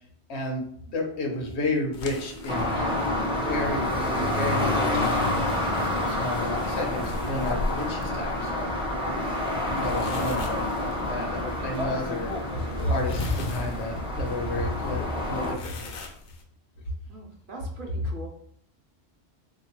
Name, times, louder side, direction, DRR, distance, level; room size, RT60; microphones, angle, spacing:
voice 1, 0.3-2.9 3.5-5.3 5.7-8.7 9.7-15.9, left 2 dB, 75° left, 2 dB, 1.0 m, -32 dB
sound 1, 1.3-12.7, right 1 dB, 85° right, 0.9 m, -43 dB
sound 2, 1.9-16.4, left 2 dB, 60° left, 0.7 m, -38 dB
sound 3, 2.5-15.5, left 1 dB, 5° right, 0.5 m, -28 dB
voice 2, 17.1-18.3, right 2 dB, 55° right, 1 dB, 0.8 m, -41 dB
3.6 x 2.9 x 2.9 m, 0.64 s
omnidirectional pair, 1.1 m